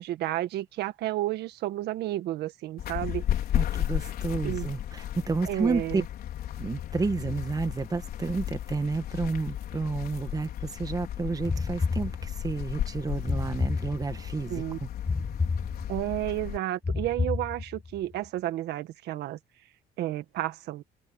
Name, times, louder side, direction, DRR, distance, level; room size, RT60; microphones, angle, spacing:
voice 1, 0.0-3.2 4.4-4.7 5.5-6.0 14.5-14.8 15.9-19.4 20.0-20.8, right 14 dB, 75° right, 1.7 m, -31 dB
sound 1, 2.8-16.6, left 11 dB, 65° left, 5.0 m, -34 dB
voice 2, 3.5-6.0 6.6-14.9, right 4 dB, 20° right, 1.4 m, -31 dB
sound 2, 11.5-12.6 13.3-14.4 15.1-16.2 16.8-18.0, left 4 dB, 20° left, 1.6 m, -31 dB
cardioid pair, 110°, 17 cm